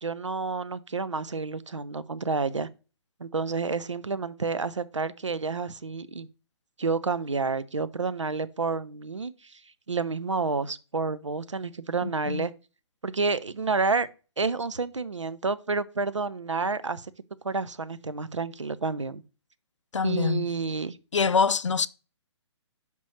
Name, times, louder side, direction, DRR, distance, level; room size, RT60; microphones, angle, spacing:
voice 1, 0.0-2.7 3.2-6.3 6.8-9.6 9.9-12.5 13.0-14.1 14.4-17.1 17.4-19.2 20.0-21.0, right 4 dB, 85° right, 0.5 m, -29 dB
voice 2, 12.0-12.5 19.9-20.5 21.1-21.9, left 5 dB, 80° left, 0.4 m, -25 dB
6.4 x 5.3 x 3.1 m
figure-of-eight pair, 130°, 15 cm